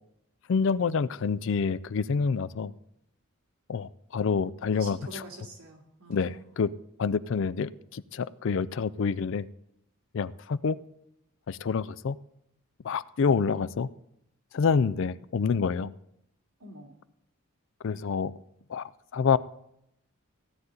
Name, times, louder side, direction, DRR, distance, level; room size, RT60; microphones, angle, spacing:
voice 1, 0.5-2.7 3.7-5.2 6.1-6.7 7.0-9.5 10.1-10.8 11.5-12.2 12.8-13.9 14.5-15.9 17.8-18.3 18.7-19.4, left 5 dB, 60° left, 18 dB, 0.4 m, -27 dB
voice 2, 4.7-6.6 16.6-16.9, right 1 dB, 85° right, -1 dB, 2.6 m, -45 dB
16.0 x 9.6 x 3.9 m, 0.77 s
head